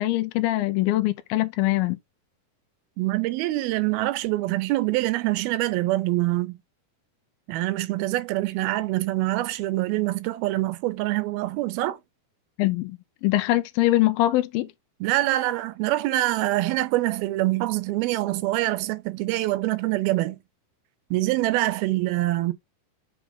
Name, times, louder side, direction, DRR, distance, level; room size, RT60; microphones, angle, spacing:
voice 1, 0.0-2.0 12.6-14.7, left 16 dB, 80° left, 2.4 m, -23 dB
voice 2, 3.0-6.6 7.5-12.0 15.0-20.4 21.1-22.5, right 17 dB, 80° right, 2.5 m, -25 dB
7.3 x 4.5 x 3.6 m
omnidirectional pair, 4.5 m